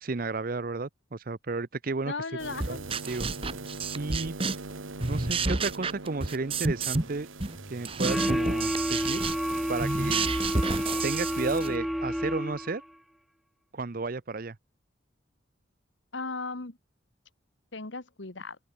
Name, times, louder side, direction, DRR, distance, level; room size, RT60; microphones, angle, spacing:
voice 1, 0.0-2.1 2.7-3.3 3.9-4.4 5.1-7.3 7.7-9.2 9.7-10.3 11.0-12.8 13.7-14.6, right 3 dB, 45° right, 0.6 m, -33 dB
voice 2, 2.0-2.9 16.1-16.8 17.7-18.6, left 3 dB, 65° left, 1.5 m, -36 dB
sound 1, 2.4-11.6, right 4 dB, 85° right, 2.2 m, -42 dB
sound 2, 2.6-4.7 5.0-7.1 7.4-11.8, right 3 dB, 30° right, 1.1 m, -30 dB
sound 3, 8.0-12.9, equal, ahead, 0.6 m, -30 dB
open air
head